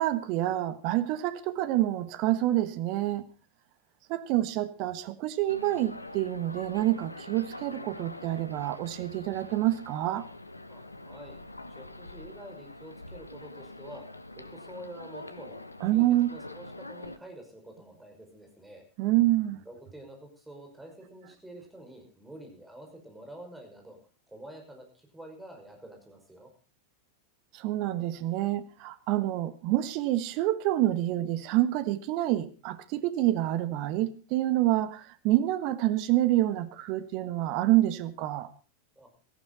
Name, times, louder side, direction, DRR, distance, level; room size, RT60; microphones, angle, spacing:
voice 1, 0.0-3.2 4.1-10.2 15.8-16.3 19.0-19.6 27.5-38.5, right 15 dB, 45° right, 1.3 m, -27 dB
sound 1, 5.5-17.2, left 2 dB, 85° left, 1.0 m, -45 dB
voice 2, 10.7-11.4 11.8-14.0 14.4-15.6 15.9-18.8 19.7-24.0 24.3-26.5 39.0-39.1, right 1 dB, 5° right, 5.8 m, -48 dB
17.0 x 14.5 x 4.1 m
figure-of-eight pair, 90°, 0 cm